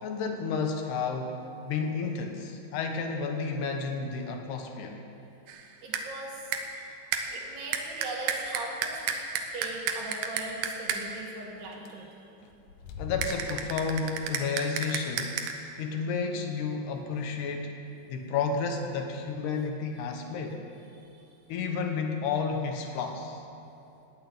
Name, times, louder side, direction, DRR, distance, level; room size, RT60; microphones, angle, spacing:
voice 1, 0.0-5.0 12.4-12.5 13.0-17.8 18.1-20.6 21.5-23.4, left 5 dB, 70° left, 3 dB, 2.8 m, -31 dB
sound 1, 5.5-6.2 6.5-6.8 7.1-11.2 13.2-15.5, right 6 dB, 85° right, 2.1 m, -33 dB
voice 2, 5.8-6.5 6.8-6.9 7.3-9.2 9.5-12.2 20.9-21.3, right 2 dB, 60° right, -2 dB, 4.0 m, -40 dB
sound 2, 7.3-7.6 8.2-8.3 8.6-8.7 9.0-9.1 11.1-11.2 11.6-11.9 12.5-13.9, left 5 dB, 90° left, 3.5 m, -41 dB
19.0 x 8.0 x 8.9 m, 2.7 s
omnidirectional pair, 5.6 m